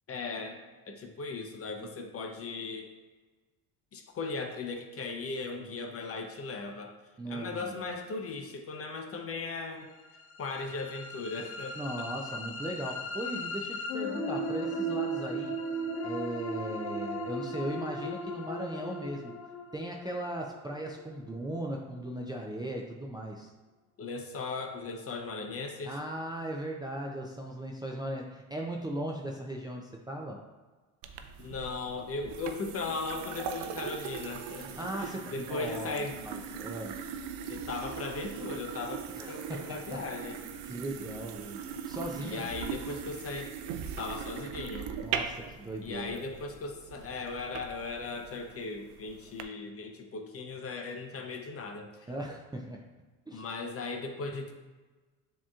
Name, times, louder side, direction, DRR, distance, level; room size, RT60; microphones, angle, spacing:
voice 1, 0.1-0.6 0.9-2.9 3.9-6.9 7.3-9.9 10.4-11.7 24.0-26.0 31.4-36.2 37.5-40.4 42.2-43.5 44.0-44.9 45.8-52.1 53.3-54.5, left 3 dB, 35° left, 3 dB, 0.7 m, -37 dB
voice 2, 7.2-7.8 11.8-15.5 16.0-19.3 19.7-23.5 25.8-30.4 34.6-37.0 39.2-40.0 40.3-42.4 45.0-46.2 52.1-52.8 53.3-53.4, right 1 dB, 10° right, -1 dB, 0.5 m, -38 dB
sound 1, 10.1-22.1, equal, 90° left, 0.7 m, -37 dB
sound 2, 31.0-49.4, right 7 dB, 70° right, 0.6 m, -40 dB
7.1 x 3.0 x 2.4 m, 1.3 s
supercardioid pair, 80°, 42 cm